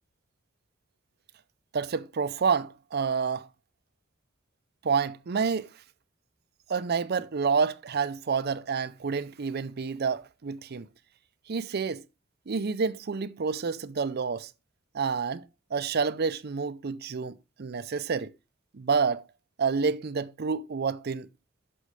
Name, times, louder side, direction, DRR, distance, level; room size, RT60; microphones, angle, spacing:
voice 1, 1.7-3.5 4.8-5.7 6.7-10.9 11.5-12.0 12.5-14.5 14.9-15.5 15.7-18.3 18.7-19.2 19.6-21.3, right 5 dB, 50° right, 0.5 m, -28 dB
11.0 x 6.5 x 3.2 m
head